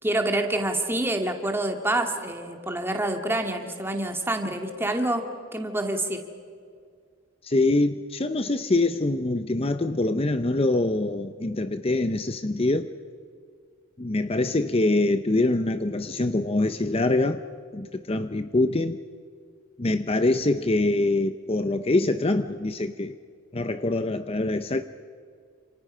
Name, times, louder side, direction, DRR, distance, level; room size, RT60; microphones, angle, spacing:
voice 1, 0.0-5.2 5.5-6.2, right 1 dB, 10° right, 4 dB, 2.2 m, -27 dB
voice 2, 7.4-12.9 14.0-17.4 17.7-19.0 19.8-23.2 23.5-24.8, left 2 dB, 30° left, 10 dB, 0.7 m, -24 dB
29.5 x 28.0 x 5.6 m, 2.2 s
head